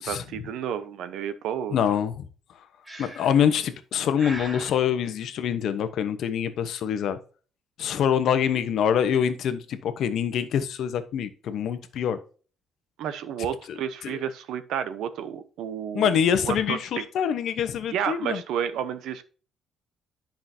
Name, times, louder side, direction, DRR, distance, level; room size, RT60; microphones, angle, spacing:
voice 1, 0.1-1.8 13.0-16.1 16.4-17.0 17.9-19.2, right 9 dB, 80° right, 0.9 m, -31 dB
voice 2, 1.7-2.3 3.0-7.2 7.8-12.2 13.7-14.2 15.9-18.4, left 8 dB, 60° left, 1.0 m, -25 dB
Breathing, 2.9-3.5 4.2-4.8, right 1 dB, 10° right, 1.2 m, -39 dB
10.5 x 5.8 x 2.8 m
cardioid pair, 175°, 0 cm